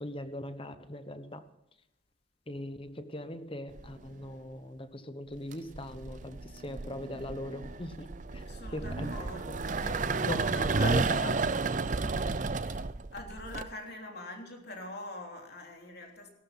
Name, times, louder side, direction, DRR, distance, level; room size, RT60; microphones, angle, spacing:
voice 1, 0.0-1.5 2.5-8.4 8.7-9.1 10.2-11.3, left 1 dB, 25° left, 10 dB, 1.0 m, -40 dB
sound 1, 3.8-4.2 5.3-13.6, right 4 dB, 40° right, 0.5 m, -32 dB
voice 2, 8.5-11.6 11.9-16.3, left 2 dB, 50° left, 2 dB, 3.2 m, -44 dB
18.0 x 12.5 x 5.7 m, 0.85 s
head